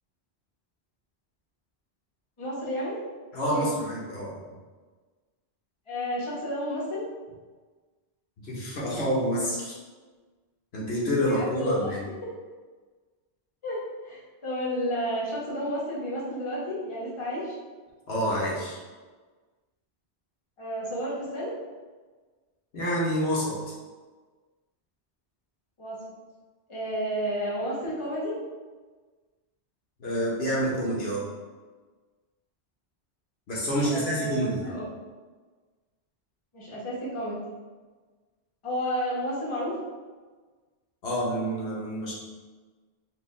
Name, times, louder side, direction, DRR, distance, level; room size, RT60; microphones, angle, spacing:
voice 1, 2.4-3.0 3.5-3.7 5.9-7.0 11.2-11.9 12.2-12.3 13.6-17.6 20.6-21.5 25.8-26.1 26.7-28.3 33.9-34.8 36.5-37.4 38.6-39.8, equal, 30° left, -6 dB, 1.0 m, -31 dB
voice 2, 3.3-4.3 8.4-9.8 10.7-12.0 18.1-18.8 22.7-23.5 30.0-31.2 33.5-34.7 41.0-42.1, equal, 70° left, -6 dB, 1.2 m, -27 dB
4.6 x 2.6 x 3.1 m, 1.4 s
omnidirectional pair, 1.1 m